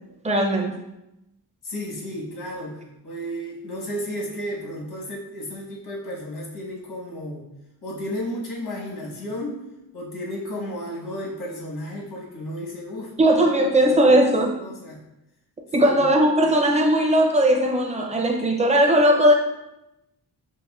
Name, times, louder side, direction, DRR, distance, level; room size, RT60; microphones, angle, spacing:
voice 1, 0.2-0.7 13.2-14.6 15.7-19.3, right 1 dB, 20° right, 1 dB, 0.4 m, -18 dB
voice 2, 1.6-7.4 7.8-9.6 9.9-14.2 14.6-15.0 15.8-16.0, equal, 80° left, -4 dB, 1.2 m, -33 dB
6.1 x 2.5 x 2.3 m, 0.90 s
wide cardioid pair, 165°, 38 cm